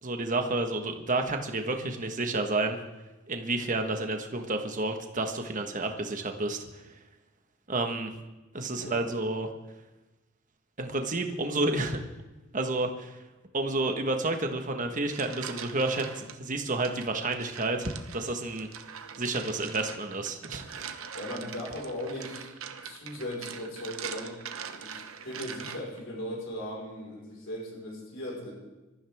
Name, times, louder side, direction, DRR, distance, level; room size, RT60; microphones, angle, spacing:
voice 1, 0.0-2.8 3.3-7.0 7.7-8.1 8.5-9.5 10.8-12.0 12.5-13.2 13.5-18.7 19.2-21.1, right 2 dB, 40° right, 5 dB, 1.5 m, -30 dB
voice 2, 8.7-9.2 21.1-22.5 22.8-24.4 24.7-28.5, left 1 dB, 65° left, -2 dB, 4.8 m, -38 dB
sound 1, 14.8-16.4 16.8-26.0, right 7 dB, 80° right, 1.0 m, -43 dB
25.5 x 14.0 x 3.6 m, 1.1 s
head